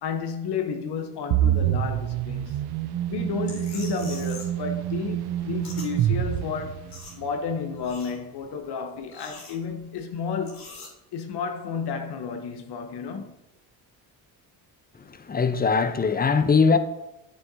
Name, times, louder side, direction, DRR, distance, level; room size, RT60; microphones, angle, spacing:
voice 1, 0.0-2.6 3.1-10.7 11.1-13.4, left 5 dB, 65° left, 0.9 m, -32 dB
sound 1, 1.3-7.3, right 11 dB, 60° right, 0.6 m, -27 dB
sound 2, 3.4-4.6 4.9-5.9 6.2-6.3 6.6-7.5 7.7-8.5 9.0-10.0 10.4-10.9, left 3 dB, 90° left, 2.5 m, -43 dB
voice 2, 15.1-16.8, left 5 dB, 20° left, 0.7 m, -21 dB
8.8 x 6.4 x 2.7 m
supercardioid pair, 60°, 43 cm